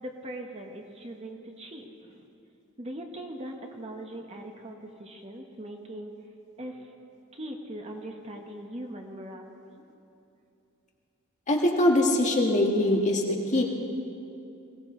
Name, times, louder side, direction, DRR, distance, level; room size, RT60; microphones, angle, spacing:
voice 1, 0.0-2.2 2.8-6.1 6.6-6.8 7.3-9.8, right 1 dB, 30° right, 2 dB, 1.2 m, -40 dB
voice 2, 11.5-13.2 13.5-13.6, left 1 dB, 35° left, 0 dB, 1.7 m, -22 dB
22.5 x 16.5 x 3.8 m, 2.7 s
head